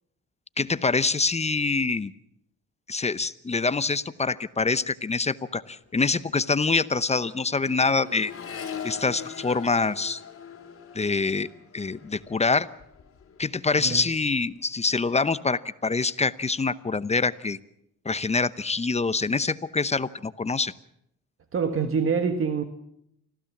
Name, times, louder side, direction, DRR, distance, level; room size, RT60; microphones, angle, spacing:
voice 1, 0.6-2.1 2.9-8.3 8.8-10.2 10.9-12.7 13.4-17.6 18.0-20.7, left 4 dB, 20° left, 16 dB, 0.8 m, -25 dB
Accelerating revving vroom, 5.6-5.7 5.9-13.4 13.8-14.4, left 7 dB, 45° left, 3.3 m, -42 dB
voice 2, 21.5-22.6, right 5 dB, 45° right, 8 dB, 1.6 m, -25 dB
25.5 x 15.5 x 7.2 m, 0.75 s
cardioid pair, 90°, 30 cm